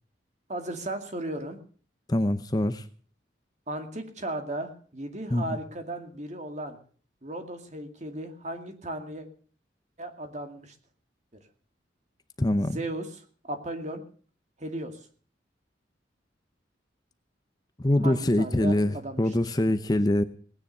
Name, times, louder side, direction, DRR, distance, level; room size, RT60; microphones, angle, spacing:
voice 1, 0.5-1.6 3.7-6.8 7.2-9.3 10.0-10.7 12.6-14.0 14.6-14.9 18.0-19.3, right 1 dB, 40° right, 2.3 m, -36 dB
voice 2, 2.1-2.8 5.3-5.4 12.4-12.8 17.8-20.2, left 1 dB, 20° left, 0.7 m, -24 dB
18.5 x 9.9 x 6.7 m
head